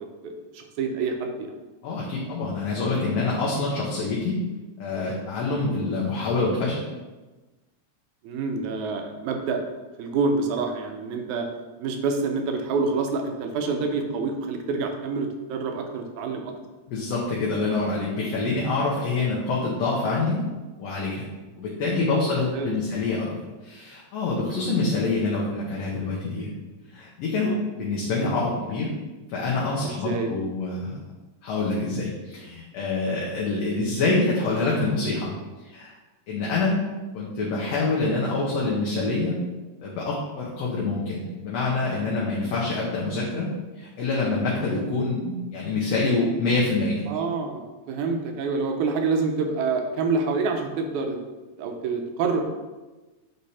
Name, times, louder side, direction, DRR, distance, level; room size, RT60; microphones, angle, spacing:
voice 1, 0.2-1.5 8.2-9.6 10.0-11.5 11.8-16.5 22.2-22.8 24.8-25.1 27.4-27.6 29.8-30.3 47.1-51.2 51.6-52.4, right 4 dB, 85° right, 4 dB, 2.2 m, -27 dB
voice 2, 1.8-4.4 4.8-6.8 16.9-20.4 20.8-21.3 21.6-23.4 23.6-26.5 26.9-27.5 27.8-28.9 29.3-31.0 31.4-35.3 35.6-35.9 36.3-36.8 37.1-39.4 39.8-47.1, left 3 dB, 70° left, -5 dB, 2.0 m, -26 dB
8.0 x 3.5 x 4.2 m, 1.2 s
omnidirectional pair, 3.3 m